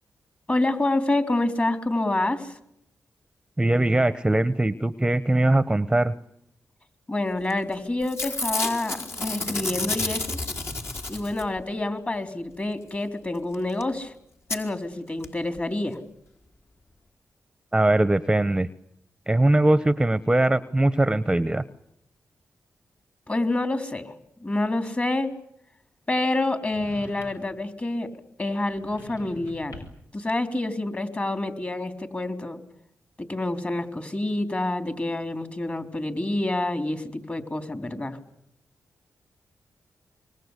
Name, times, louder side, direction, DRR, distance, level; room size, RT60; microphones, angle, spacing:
voice 1, 0.5-2.5 7.1-10.4 11.1-14.1 14.5-16.0 23.3-24.1 24.4-25.3 26.1-28.1 28.4-29.7 30.1-32.6 33.3-38.2, left 2 dB, 30° left, 8 dB, 3.8 m, -27 dB
voice 2, 3.6-6.1 17.7-18.7 19.3-21.6, right 1 dB, 15° right, 14 dB, 1.0 m, -21 dB
Packing tape duct tape / Tearing, 7.5-7.7 8.0-11.6 13.5-13.6 13.8-13.9 14.5-14.6 15.2-15.3 15.5-15.6, left 2 dB, 50° left, 4.6 m, -30 dB
sound 1, 26.7-27.6 28.7-30.1, left 2 dB, 80° left, 7.7 m, -45 dB
26.5 x 23.5 x 8.3 m, 0.75 s
cardioid pair, 70°, 6 cm